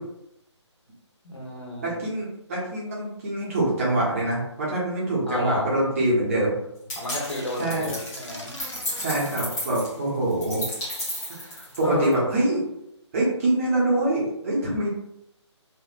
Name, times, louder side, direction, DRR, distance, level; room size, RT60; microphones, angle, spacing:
voice 1, 1.2-2.0 5.2-5.7 7.0-8.5 11.8-12.1, left 2 dB, 70° left, -4 dB, 1.3 m, -31 dB
voice 2, 1.8-6.5 7.6-7.9 9.0-10.6 11.5-12.6 13.1-14.9, right 1 dB, 30° right, -6 dB, 1.1 m, -25 dB
sound 1, 6.9-12.1, left 1 dB, 15° left, 0.9 m, -34 dB
sound 2, 7.0-9.4, equal, 90° left, 1.1 m, -42 dB
3.2 x 2.7 x 2.5 m, 0.83 s
figure-of-eight pair, 145°, 15 cm